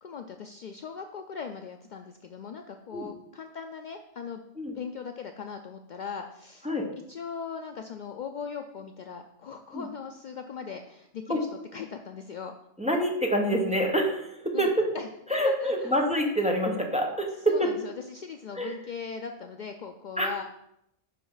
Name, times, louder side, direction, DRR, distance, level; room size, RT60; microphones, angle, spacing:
voice 1, 0.0-4.4 4.7-6.7 7.1-11.5 11.7-12.5 14.5-15.1 15.4-15.9 17.5-20.4, left 6 dB, 70° left, 5 dB, 0.4 m, -39 dB
voice 2, 12.8-14.8 15.3-17.7 18.5-18.7 20.2-20.3, equal, 5° right, 0 dB, 1.1 m, -26 dB
10.5 x 5.1 x 3.9 m, 0.80 s
omnidirectional pair, 1.3 m